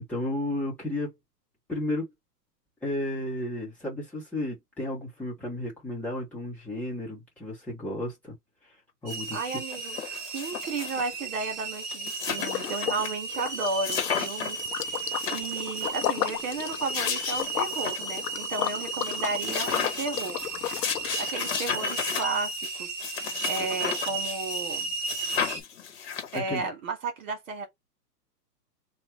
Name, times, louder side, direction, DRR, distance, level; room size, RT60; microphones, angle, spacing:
voice 1, 0.1-1.1 1.7-2.1 2.8-8.3 9.0-9.5 26.3-26.6, left 1 dB, 5° left, 1.2 m, -33 dB
sound 1, 9.1-9.2 9.5-11.1 11.6-11.7 11.8-13.1 13.4-13.5 13.8-14.6 15.0-15.9 16.6-18.3 18.6-18.7 19.0-24.8 25.1-26.6, left 7 dB, 40° left, 1.2 m, -33 dB
sound 2, 9.1-25.6, right 3 dB, 15° right, 0.8 m, -34 dB
voice 2, 9.3-10.0 10.3-20.4 21.2-22.9 23.2-24.9 26.3-27.7, right 3 dB, 50° right, 1.8 m, -34 dB
Liquid, 12.4-13.1 13.3-21.3, left 11 dB, 70° left, 0.8 m, -34 dB
3.2 x 2.5 x 4.3 m
hypercardioid pair, 170°, 49 cm